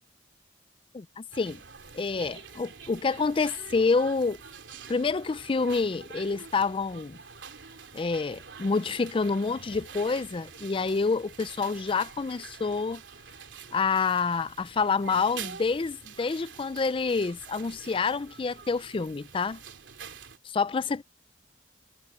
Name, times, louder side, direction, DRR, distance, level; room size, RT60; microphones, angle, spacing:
voice 1, 0.9-1.6 1.9-4.4 4.9-7.2 7.9-13.0 13.7-19.6 20.4-21.0, left 4 dB, 30° left, 0.4 m, -28 dB
sound 1, 1.3-20.4, right 6 dB, 85° right, 2.9 m, -46 dB
head